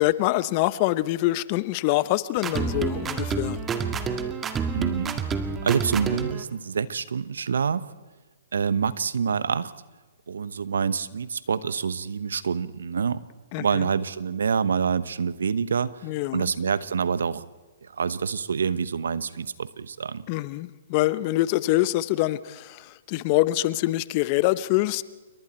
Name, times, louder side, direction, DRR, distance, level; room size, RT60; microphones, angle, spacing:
voice 1, 0.0-3.6 13.5-13.8 16.0-16.5 20.3-25.0, left 17 dB, 40° left, 17 dB, 0.8 m, -25 dB
sound 1, 2.4-6.4, right 5 dB, 15° right, 1.7 m, -28 dB
voice 2, 4.7-5.2 5.6-7.9 8.5-9.7 10.3-13.2 13.6-16.1 16.3-17.4 17.8-20.3, right 6 dB, 75° right, 16 dB, 1.0 m, -27 dB
28.5 x 23.0 x 4.4 m, 1.2 s
hypercardioid pair, 125°, 0 cm